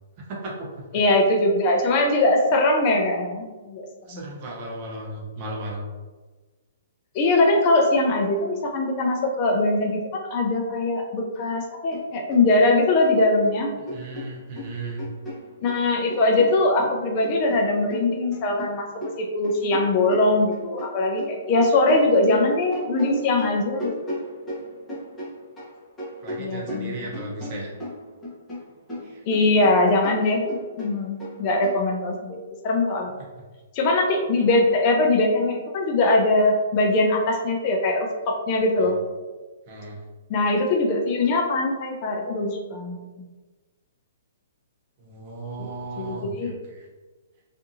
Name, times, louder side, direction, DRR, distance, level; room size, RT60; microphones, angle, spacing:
voice 1, 0.3-1.0 4.1-5.8 13.9-15.1 26.2-27.7 29.0-29.2 34.4-34.5 38.8-38.9 39.7-40.0 45.0-46.9, right 2 dB, 40° right, -3 dB, 0.8 m, -35 dB
voice 2, 0.9-4.2 7.1-13.7 15.6-18.9 19.2-23.9 26.4-27.0 28.9-30.4 30.8-32.4 32.6-33.1 33.7-39.0 40.3-43.0 45.6-45.7 46.0-46.5, left 2 dB, 35° left, 1 dB, 0.4 m, -21 dB
sound 1, 11.9-12.0 12.3-13.5 13.9-15.8 16.1-20.9 21.2-25.7 26.0-28.6 28.9-31.8, left 1 dB, 10° left, 0.9 m, -36 dB
2.6 x 2.5 x 2.6 m, 1.3 s
hypercardioid pair, 145°, 0 cm